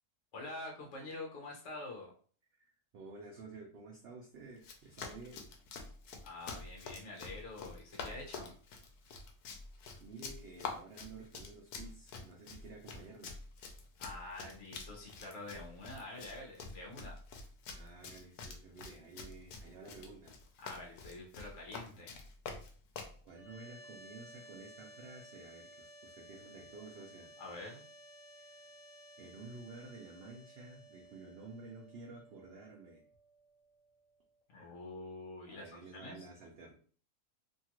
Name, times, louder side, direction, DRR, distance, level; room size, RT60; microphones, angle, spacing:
voice 1, 0.3-2.1 6.2-8.5 14.0-17.1 20.6-22.2 27.4-27.8 34.5-36.2, left 2 dB, 60° left, -1 dB, 1.0 m, -46 dB
voice 2, 2.5-5.4 10.0-13.3 17.7-20.4 23.2-27.3 28.4-28.7 29.2-33.0 35.5-36.7, right 3 dB, 65° right, -1 dB, 0.6 m, -52 dB
Run, 4.6-23.2, left 4 dB, 80° left, 1.1 m, -47 dB
sound 1, 23.3-34.4, right 1 dB, 30° left, 1.3 m, -57 dB
2.9 x 2.4 x 2.9 m, 0.43 s
omnidirectional pair, 1.6 m